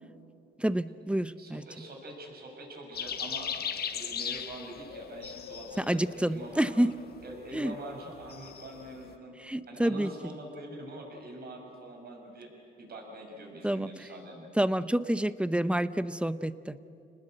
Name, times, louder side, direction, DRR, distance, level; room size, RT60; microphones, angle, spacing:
voice 1, 0.6-1.6 5.8-6.9 7.5-7.7 9.4-10.1 13.6-13.9 14.6-16.8, right 1 dB, 5° right, 15 dB, 0.7 m, -28 dB
voice 2, 1.4-3.5 3.9-6.9 7.2-9.3 9.7-12.5 12.8-14.5, right 1 dB, 50° right, 0 dB, 6.6 m, -44 dB
sound 1, 2.9-9.1, left 7 dB, 55° left, 1.5 m, -38 dB
29.0 x 20.0 x 7.9 m, 2.7 s
cardioid pair, 90°, 20 cm